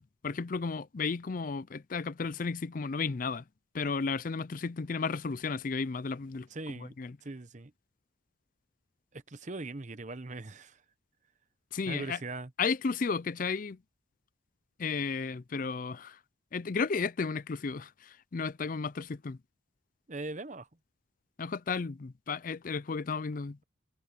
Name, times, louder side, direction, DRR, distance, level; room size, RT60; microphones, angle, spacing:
voice 1, 0.0-3.4 3.7-6.5 7.0-7.2 11.7-12.2 12.6-13.8 14.8-16.2 16.5-19.4 21.4-23.6, left 4 dB, 40° left, 0.4 m, -33 dB
voice 2, 6.5-6.9 7.2-7.7 9.1-10.8 11.8-12.5 20.1-20.7, right 2 dB, 35° right, 0.9 m, -40 dB
head